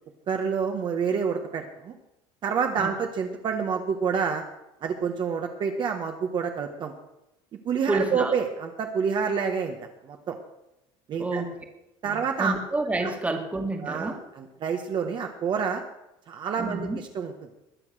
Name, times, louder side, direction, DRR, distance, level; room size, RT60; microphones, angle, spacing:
voice 1, 0.3-1.9 2.4-4.4 4.8-6.9 7.6-9.8 10.0-10.4 11.1-11.4 12.0-12.5 13.0-13.1 13.8-15.8 16.3-17.3, right 6 dB, 40° right, 4 dB, 1.4 m, -28 dB
voice 2, 7.9-8.4 11.2-11.5 12.1-14.2 16.6-17.0, right 2 dB, 10° right, 4 dB, 2.0 m, -29 dB
21.0 x 7.2 x 6.3 m, 0.90 s
cardioid pair, 140°, 12 cm